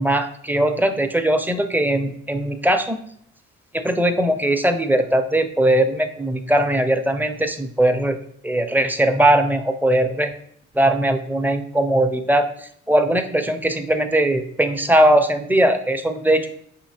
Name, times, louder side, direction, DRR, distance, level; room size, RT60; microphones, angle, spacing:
voice 1, 0.0-3.0 3.7-8.2 8.4-10.3 10.7-16.5, right 1 dB, 5° right, 7 dB, 0.5 m, -19 dB
5.7 x 2.8 x 2.7 m, 0.65 s
hypercardioid pair, 45°, 33 cm